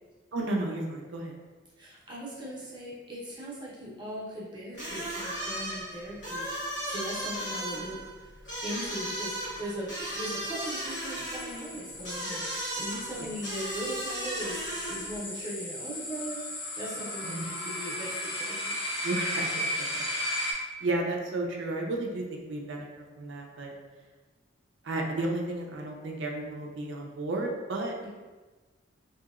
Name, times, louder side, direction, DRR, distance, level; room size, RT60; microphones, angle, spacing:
voice 1, 0.3-1.4 17.2-17.4 19.0-20.0 20.4-22.9 23.2-23.7 24.8-28.1, right 2 dB, 60° right, 0 dB, 0.4 m, -33 dB
voice 2, 1.8-6.5 6.8-8.3 8.6-18.7, right 1 dB, 20° right, -7 dB, 0.8 m, -39 dB
sound 1, 4.7-15.2, right 1 dB, 60° left, 1.2 m, -36 dB
sound 2, 10.6-20.5, left 1 dB, 30° left, 0.4 m, -36 dB
2.8 x 2.7 x 2.4 m, 1.3 s
head